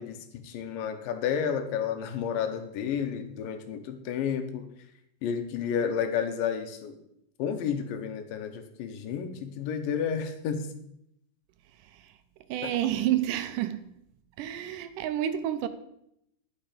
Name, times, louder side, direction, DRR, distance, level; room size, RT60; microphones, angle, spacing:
voice 1, 0.0-4.7 5.2-7.0 7.4-10.7 12.6-12.7, left 7 dB, 85° left, 2.6 m, -31 dB
voice 2, 11.8-12.1 12.5-13.9 14.4-15.7, right 12 dB, 80° right, 2.1 m, -29 dB
11.5 x 6.1 x 5.1 m
omnidirectional pair, 3.9 m